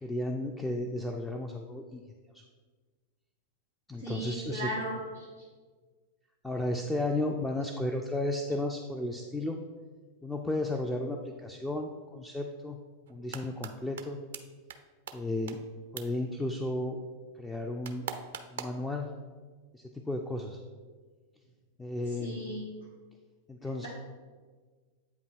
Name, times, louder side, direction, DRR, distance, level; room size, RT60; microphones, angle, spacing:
voice 1, 0.0-2.0 3.9-4.7 6.4-9.6 10.2-12.8 13.1-14.2 15.1-15.6 15.9-17.0 17.4-18.1 18.5-19.1 19.7-20.6 21.8-22.4 23.5-23.9, left 1 dB, 5° left, 2 dB, 0.4 m, -33 dB
voice 2, 4.0-5.3 22.2-22.6, right 1 dB, 85° left, -6 dB, 1.5 m, -36 dB
sound 1, 13.1-13.7 14.0-14.1 14.3-14.4 14.7-14.8 15.1-15.2 15.5-15.6 16.0-16.1 17.8-18.8, right 8 dB, 55° right, 0.4 m, -38 dB
8.2 x 2.7 x 4.3 m, 1.5 s
figure-of-eight pair, 90°, 0 cm